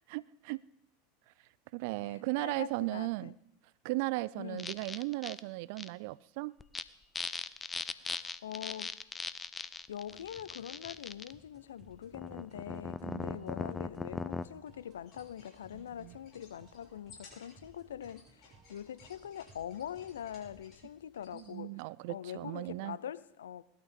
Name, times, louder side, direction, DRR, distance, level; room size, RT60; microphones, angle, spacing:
voice 1, 0.1-0.6 1.7-3.3 3.8-6.5 13.0-13.5 15.7-16.1 21.3-23.0, right 20 dB, 60° right, 0.5 m, -37 dB
voice 2, 2.0-3.3 4.4-4.8 7.9-9.0 9.9-21.8 22.1-23.6, left 10 dB, 80° left, 0.6 m, -44 dB
sound 1, 4.6-5.4 5.8-5.9 6.6-6.8 7.2-11.3 12.1-14.5, left 4 dB, 20° left, 0.6 m, -39 dB
sound 2, 10.0-20.6, right 3 dB, 35° right, 6.1 m, -62 dB
sound 3, 15.0-21.5, left 4 dB, 45° left, 6.8 m, -60 dB
19.5 x 12.0 x 3.8 m
hypercardioid pair, 90°, 0 cm